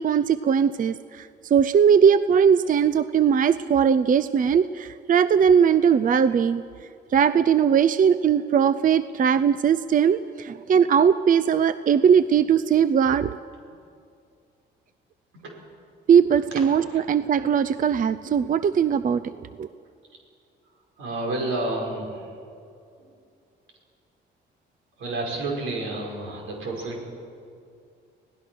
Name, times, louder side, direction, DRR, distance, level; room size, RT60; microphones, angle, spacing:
voice 1, 0.0-6.6 7.1-13.4 16.1-19.7, right 7 dB, 45° right, 14 dB, 0.6 m, -20 dB
voice 2, 21.0-22.3 23.0-23.1 25.0-27.1, right 2 dB, 90° right, 0 dB, 5.6 m, -30 dB
25.0 x 18.0 x 6.3 m, 2.4 s
cardioid pair, 90°, 20 cm